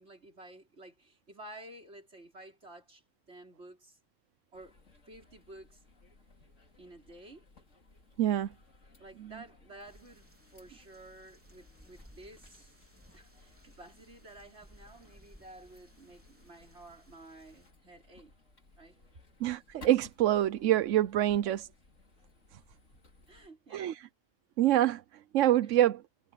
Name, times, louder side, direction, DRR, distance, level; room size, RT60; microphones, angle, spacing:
voice 1, 0.0-3.0 3.3-4.0 4.5-4.8 5.1-5.8 6.8-7.5 9.0-12.9 13.1-18.3 18.8-19.0 21.5-21.6 23.3-24.0, right 1 dB, 60° right, 5.1 m, -52 dB
sound 1, 4.5-23.5, left 3 dB, 90° left, 3.1 m, -60 dB
voice 2, 8.2-8.5 9.2-9.3 19.4-21.7 22.5-22.6 23.7-24.1 24.6-26.0, right 13 dB, 90° right, 1.0 m, -26 dB
sound 2, 9.9-17.7, equal, 10° right, 3.8 m, -60 dB
omnidirectional pair, 1.3 m